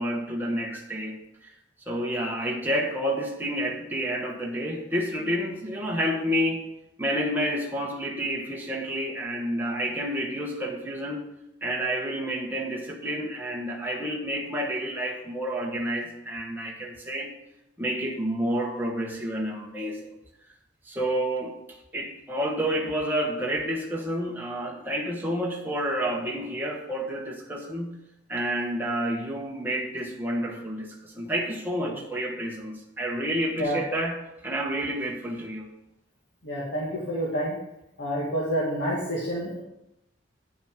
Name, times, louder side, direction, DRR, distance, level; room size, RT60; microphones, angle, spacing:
voice 1, 0.0-1.5 1.9-6.6 7.0-11.3 11.6-17.3 17.8-20.2 20.8-21.6 21.9-28.0 28.3-34.2 34.4-35.7, equal, 10° right, -1 dB, 1.2 m, -29 dB
voice 2, 36.4-37.6 38.0-39.6, equal, 70° left, -6 dB, 2.0 m, -28 dB
9.5 x 6.2 x 5.1 m, 0.86 s
head